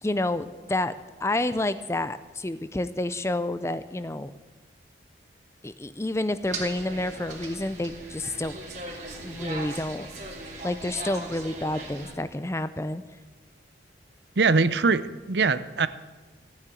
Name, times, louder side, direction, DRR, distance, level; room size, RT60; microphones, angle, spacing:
voice 1, 0.0-0.9 1.2-4.3 5.6-8.6 9.2-10.1 10.6-13.0, left 1 dB, 15° left, 13 dB, 0.5 m, -29 dB
sound 1, 6.4-12.1, right 2 dB, 40° right, 3.0 m, -39 dB
voice 2, 14.4-15.9, right 4 dB, 65° right, 15 dB, 0.7 m, -22 dB
15.5 x 9.8 x 9.2 m, 1.3 s
head